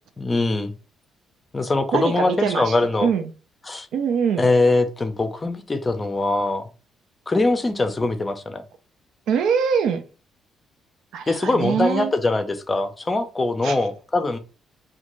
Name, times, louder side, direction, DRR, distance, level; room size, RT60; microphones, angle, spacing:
voice 1, 0.2-0.7 1.5-3.1 3.7-3.9 4.4-6.7 7.3-8.6 11.3-14.4, left 2 dB, 25° left, 0.5 m, -22 dB
voice 2, 1.9-2.7 3.0-3.3 3.9-4.5 9.3-10.0 11.1-12.1 13.6-13.8, right 7 dB, 80° right, 0.4 m, -23 dB
2.5 x 2.2 x 2.9 m
cardioid pair, 90°, 0 cm